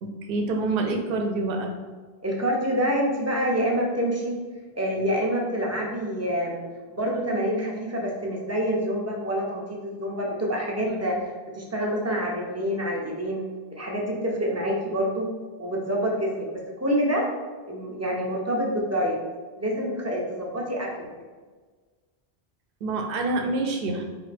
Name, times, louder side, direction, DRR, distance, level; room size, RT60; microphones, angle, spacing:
voice 1, 0.0-1.7 10.8-11.0 22.8-24.0, right 2 dB, 65° right, 3 dB, 0.7 m, -27 dB
voice 2, 2.2-4.4 4.7-11.1 11.5-13.4 13.7-15.3 15.6-16.5 16.8-17.3 17.7-19.2 19.6-21.1, equal, 20° right, -2 dB, 0.4 m, -27 dB
4.0 x 2.5 x 3.2 m, 1.4 s
omnidirectional pair, 1.1 m